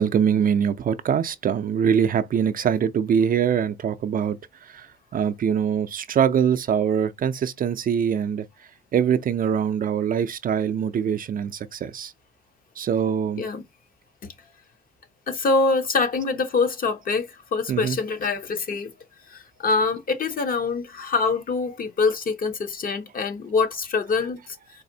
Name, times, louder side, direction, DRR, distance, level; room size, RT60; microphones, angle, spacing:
voice 1, 0.0-4.4 4.7-4.9 5.1-8.4 8.9-12.1 12.8-13.4 17.7-18.0, right 8 dB, 45° right, 0.4 m, -23 dB
voice 2, 15.3-18.9 19.3-24.4, left 4 dB, 45° left, 0.7 m, -24 dB
4.0 x 2.5 x 2.7 m
cardioid pair, 90°, 20 cm